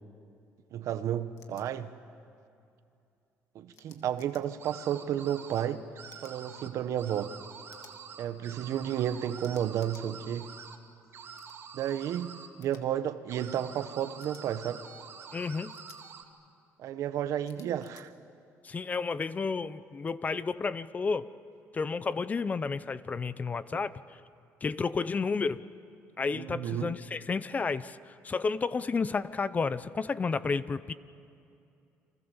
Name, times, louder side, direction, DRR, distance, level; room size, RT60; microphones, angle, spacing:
voice 1, 0.7-2.0 3.5-5.8 6.2-7.3 8.2-10.5 11.7-14.8 16.8-18.1 26.3-27.0, right 10 dB, 65° right, 1.2 m, -32 dB
sound 1, 1.4-1.6 3.7-4.4 6.1-6.4 7.7-8.0 9.4-10.1 11.4-11.6 12.6-12.8 14.2-14.4 15.7-16.0 17.5-18.0, left 9 dB, 75° left, 2.2 m, -57 dB
sound 2, 4.6-5.7 6.0-6.7 7.0-10.8 11.1-12.5 13.3-16.2, right 6 dB, 45° right, 2.6 m, -47 dB
voice 2, 15.3-15.8 18.6-21.3 21.7-23.9 24.6-25.6 26.2-30.9, left 4 dB, 25° left, 0.7 m, -31 dB
30.0 x 25.0 x 7.2 m
cardioid pair, 120°, 6 cm